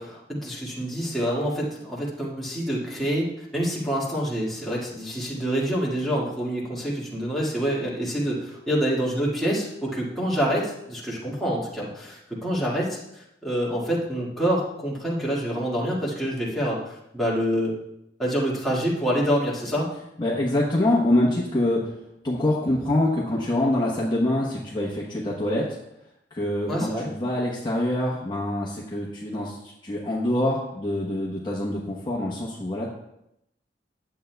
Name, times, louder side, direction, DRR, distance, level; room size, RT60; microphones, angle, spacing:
voice 1, 0.0-17.8 18.2-19.9 26.7-27.1, equal, ahead, -6 dB, 1.9 m, -27 dB
voice 2, 20.2-21.9 22.2-25.8 26.3-32.9, left 1 dB, 25° left, -5 dB, 1.0 m, -25 dB
11.0 x 7.7 x 2.3 m, 0.83 s
head